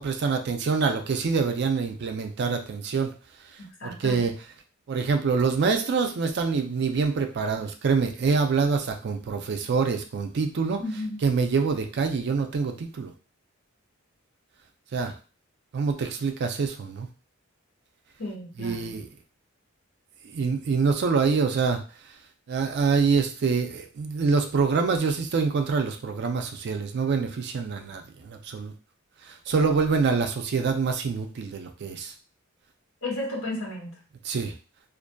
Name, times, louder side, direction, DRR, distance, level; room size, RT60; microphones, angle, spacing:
voice 1, 0.0-3.1 3.8-4.3 4.9-10.8 11.2-13.1 14.9-15.1 15.7-17.1 18.6-19.1 20.3-21.8 22.5-28.7 29.3-32.1 34.2-34.5, right 5 dB, 55° right, 5 dB, 0.4 m, -25 dB
voice 2, 3.6-4.3 10.8-11.2 18.2-19.0 33.0-34.0, left 2 dB, 80° left, -1 dB, 1.0 m, -34 dB
2.6 x 2.4 x 2.2 m, 0.36 s
head